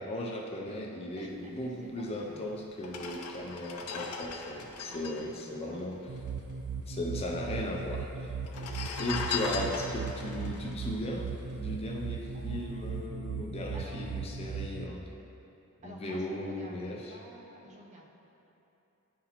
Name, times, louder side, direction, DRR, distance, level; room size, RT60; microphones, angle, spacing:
voice 1, 0.0-6.0 6.9-8.3 9.0-15.1 15.8-17.1, left 1 dB, 25° left, 0 dB, 0.4 m, -37 dB
voice 2, 1.2-2.5 4.8-5.8 8.6-8.9 12.3-14.0 15.8-18.1, right 1 dB, 30° right, -2 dB, 0.6 m, -51 dB
sound 1, 2.1-2.2 2.8-6.5 6.7-6.8 7.0-7.7 8.4-11.9 12.3-12.5, left 5 dB, 80° left, 0.5 m, -39 dB
sound 2, 6.1-14.9, right 5 dB, 65° right, 0.3 m, -38 dB
10.5 x 4.0 x 2.9 m, 2.9 s
head